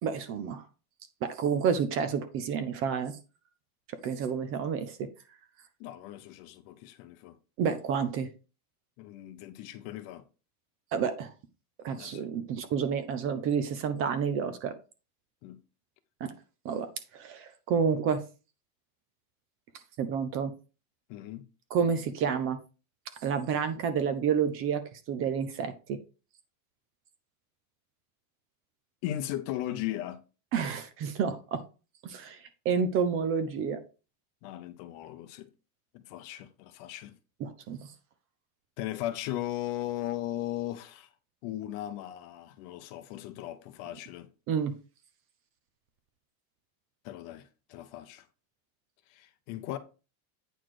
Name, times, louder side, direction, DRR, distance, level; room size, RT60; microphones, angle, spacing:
voice 1, 0.0-0.6 1.2-3.2 4.0-5.1 7.6-8.3 10.9-11.3 11.8-14.8 16.2-16.3 16.6-16.9 17.1-18.2 20.0-20.5 21.7-22.6 23.2-24.8 25.1-26.0 30.5-31.6 32.0-32.4 32.6-33.8 37.4-37.9 44.5-44.7, right 6 dB, 30° right, 0.6 m, -29 dB
voice 2, 5.8-7.4 9.0-10.2 12.0-12.3 15.4-15.6 21.1-21.5 29.0-30.2 34.4-35.5 35.9-37.1 38.8-41.1 41.4-44.3 47.0-48.3 49.1-49.8, left 13 dB, 40° left, 0.7 m, -37 dB
9.1 x 4.0 x 4.8 m
supercardioid pair, 170°, 45 cm